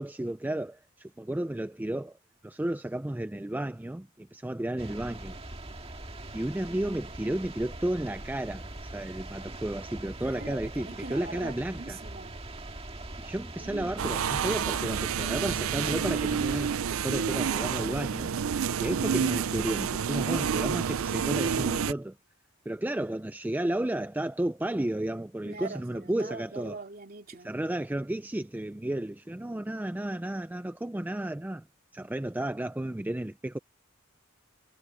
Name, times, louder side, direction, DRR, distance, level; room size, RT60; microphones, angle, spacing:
voice 1, 0.0-2.2 2.4-5.4 6.3-12.0 13.2-18.3 18.8-22.2 22.7-26.8 27.4-31.7 31.9-33.6, right 1 dB, 10° right, 0.4 m, -33 dB
sea from the clifftop, 4.8-16.8, right 2 dB, 30° right, 2.0 m, -42 dB
voice 2, 10.2-12.4 13.6-14.0 25.4-27.6, right 3 dB, 45° right, 3.0 m, -42 dB
sound 1, 14.0-21.9, right 7 dB, 75° right, 0.5 m, -29 dB
head